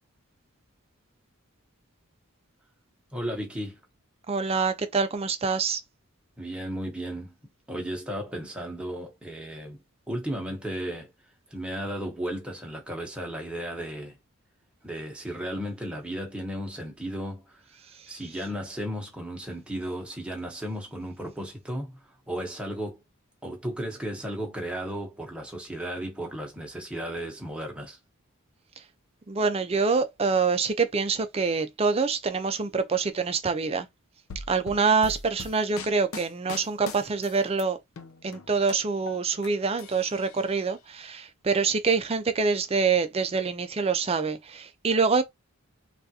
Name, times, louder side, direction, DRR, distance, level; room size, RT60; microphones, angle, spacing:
voice 1, 3.1-3.8 6.4-7.3 7.7-9.8 10.1-11.1 11.5-14.2 14.8-17.6 18.1-23.0 23.4-28.0, equal, 5° right, 0.9 m, -34 dB
voice 2, 4.3-5.8 29.3-33.9 34.5-37.8 38.2-45.2, right 4 dB, 30° right, 0.4 m, -25 dB
sound 1, 34.3-37.6 38.0-39.5 39.8-40.7, left 4 dB, 75° left, 0.5 m, -40 dB
3.5 x 2.4 x 2.7 m
head